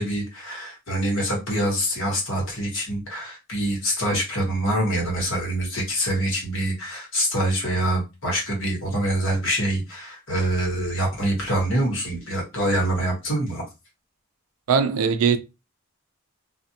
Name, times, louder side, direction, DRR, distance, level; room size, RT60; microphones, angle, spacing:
voice 1, 0.0-13.6, right 1 dB, 60° left, 1.1 m, -25 dB
voice 2, 14.7-15.4, right 6 dB, 75° right, 0.3 m, -20 dB
2.4 x 2.0 x 2.6 m
head